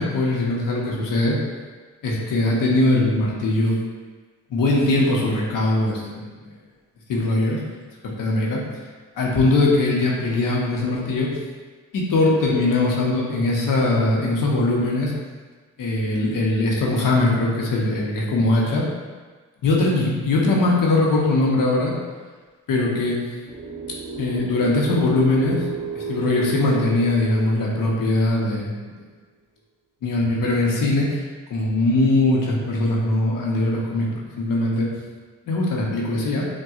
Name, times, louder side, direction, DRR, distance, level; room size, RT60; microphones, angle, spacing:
voice 1, 0.0-1.4 2.0-3.8 4.5-6.4 7.1-7.6 8.0-8.6 9.2-11.3 11.9-15.1 15.8-18.8 19.6-21.9 22.7-23.2 24.2-25.6 25.9-29.0 30.0-31.2 31.5-34.1 34.4-34.9 35.5-36.5, left 2 dB, 75° left, -3 dB, 0.8 m, -21 dB
sound 1, 23.5-28.6, right 5 dB, 25° right, 0.7 m, -33 dB
5.8 x 2.3 x 2.4 m, 1.4 s
supercardioid pair, 55°, 32 cm